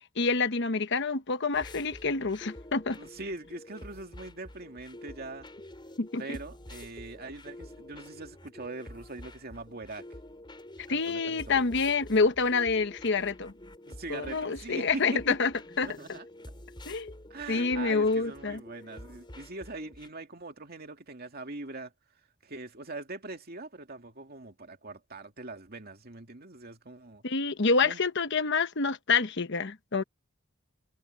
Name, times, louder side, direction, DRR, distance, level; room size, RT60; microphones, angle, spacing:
voice 1, 0.2-3.0 6.0-6.2 10.9-13.5 14.1-15.9 16.9-17.1 17.5-18.6 27.2-30.0, left 4 dB, 60° left, 1.1 m, -27 dB
sound 1, 1.5-20.1, left 1 dB, 25° left, 5.4 m, -48 dB
voice 2, 3.0-5.5 6.2-10.1 10.9-11.7 13.9-15.2 15.8-16.3 17.3-21.9 22.4-27.2 27.8-28.0, right 2 dB, 50° right, 2.4 m, -42 dB
head